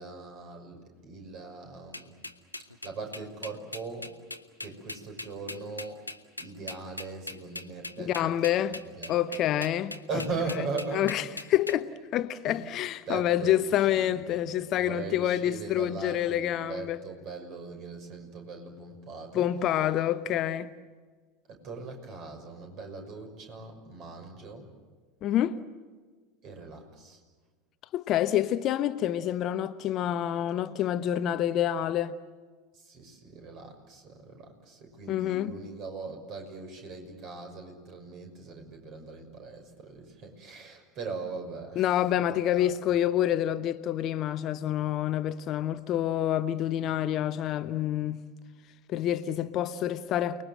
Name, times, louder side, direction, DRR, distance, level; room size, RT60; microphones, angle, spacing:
voice 1, 0.0-2.1 2.6-4.2 4.6-6.1 6.4-9.2 10.1-11.4 12.4-12.6 13.1-19.8 21.5-24.7 26.4-27.2 32.7-42.8, right 4 dB, 40° right, 6.2 m, -40 dB
sound 1, 1.9-11.7, left 2 dB, 85° left, 1.1 m, -39 dB
voice 2, 8.1-8.8 9.1-9.9 10.9-11.2 11.5-17.0 19.3-20.7 25.2-25.6 27.9-32.1 35.1-35.5 41.8-48.2 48.9-50.4, left 11 dB, 40° left, 0.9 m, -27 dB
29.5 x 21.0 x 7.8 m
figure-of-eight pair, 80°, 0 cm